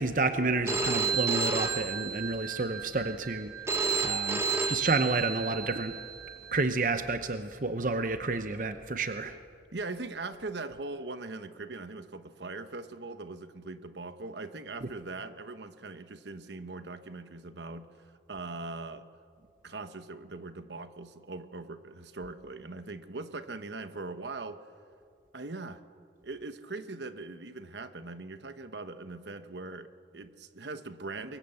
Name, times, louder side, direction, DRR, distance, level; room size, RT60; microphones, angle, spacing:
voice 1, 0.0-3.5 4.0-6.0 6.5-9.4, right 3 dB, 45° right, 9 dB, 0.8 m, -30 dB
Telephone, 0.7-6.6, right 5 dB, 15° right, 1.1 m, -32 dB
voice 2, 9.7-19.1 19.6-24.7 25.3-25.8 26.2-31.4, right 3 dB, 70° right, 10 dB, 1.1 m, -41 dB
24.0 x 22.5 x 8.0 m, 2.4 s
head